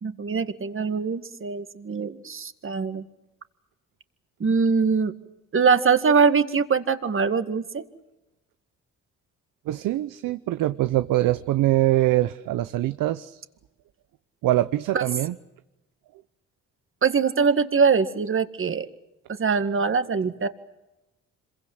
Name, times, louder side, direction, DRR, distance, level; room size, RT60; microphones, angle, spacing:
voice 1, 0.0-3.1 4.4-5.1 5.5-7.8 14.9-15.0 17.0-18.9 19.4-20.5, right 5 dB, 40° right, 10 dB, 2.0 m, -22 dB
voice 2, 9.7-13.4 14.4-15.3, right 15 dB, 85° right, 12 dB, 0.8 m, -23 dB
26.5 x 23.0 x 8.0 m, 0.97 s
cardioid pair, 80°, 32 cm